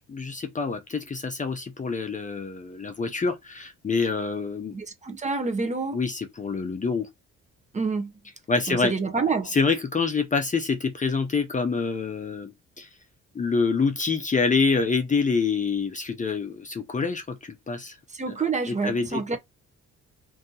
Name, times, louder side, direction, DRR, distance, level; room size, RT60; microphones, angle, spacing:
voice 1, 0.1-4.8 5.9-7.1 8.5-8.9 9.5-12.9 13.3-18.0 18.7-19.2, left 4 dB, 25° left, 0.6 m, -26 dB
voice 2, 4.7-6.0 7.7-8.1 8.7-9.5 18.1-19.4, right 4 dB, 25° right, 0.8 m, -27 dB
2.7 x 2.6 x 3.7 m
cardioid pair, 90°, 30 cm